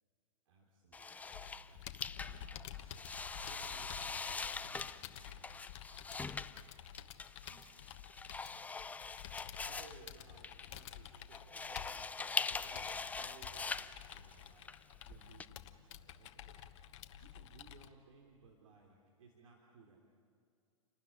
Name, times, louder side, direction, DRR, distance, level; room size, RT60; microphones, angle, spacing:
voice 1, 0.4-1.9 2.2-5.7 6.1-6.8 7.4-8.0 8.4-8.9 9.6-14.7 15.1-16.7 17.2-20.0, right 4 dB, 70° right, 0 dB, 3.1 m, -62 dB
sound 1, 0.9-15.5, left 4 dB, 10° left, 0.5 m, -43 dB
Computer keyboard, 1.3-17.9, left 10 dB, 55° left, 1.2 m, -51 dB
29.5 x 12.5 x 10.0 m, 2.3 s
hypercardioid pair, 115°, 17 cm